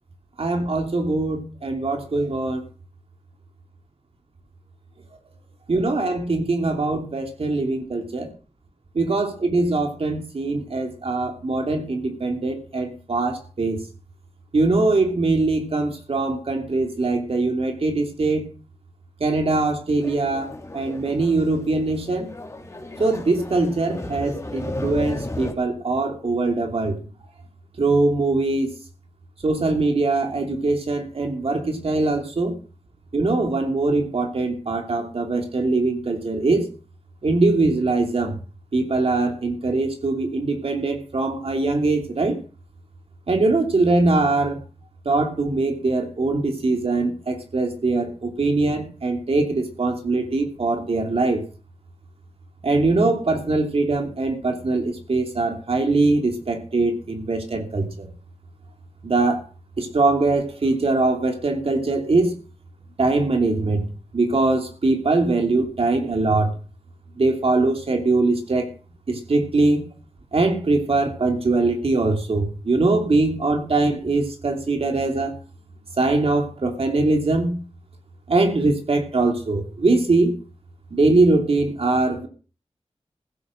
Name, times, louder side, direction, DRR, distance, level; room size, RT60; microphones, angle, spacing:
voice 1, 0.4-2.6 5.7-8.3 8.9-13.8 14.5-18.5 19.2-22.3 23.0-27.0 27.8-28.7 29.4-32.6 33.1-36.6 37.2-38.4 38.7-42.4 43.3-44.6 45.0-51.4 52.6-58.1 59.0-59.4 59.8-62.3 63.0-63.9 64.1-66.6 67.2-68.7 69.1-69.9 70.3-75.4 76.0-77.6 78.3-80.3 80.9-82.3, right 3 dB, 60° right, 3 dB, 2.9 m, -22 dB
sound 1, 20.0-25.5, left 1 dB, 25° left, 2.7 m, -34 dB
15.5 x 8.6 x 6.3 m, 0.36 s
wide cardioid pair, 100°, 11 cm